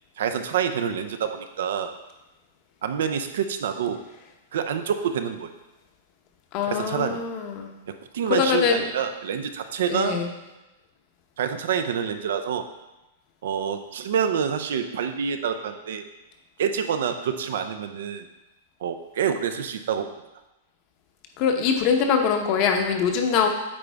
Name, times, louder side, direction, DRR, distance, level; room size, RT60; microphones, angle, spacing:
voice 1, 0.2-1.9 2.8-4.0 4.5-5.5 6.6-7.2 7.9-10.2 11.4-12.6 13.4-16.0 16.6-18.3 18.8-20.1, right 7 dB, 70° right, 8 dB, 0.6 m, -27 dB
voice 2, 6.5-7.7 8.3-8.8 9.9-10.3 21.4-23.5, left 6 dB, 40° left, 4 dB, 0.9 m, -23 dB
8.6 x 4.0 x 3.5 m, 1.0 s
hypercardioid pair, 150°, 0 cm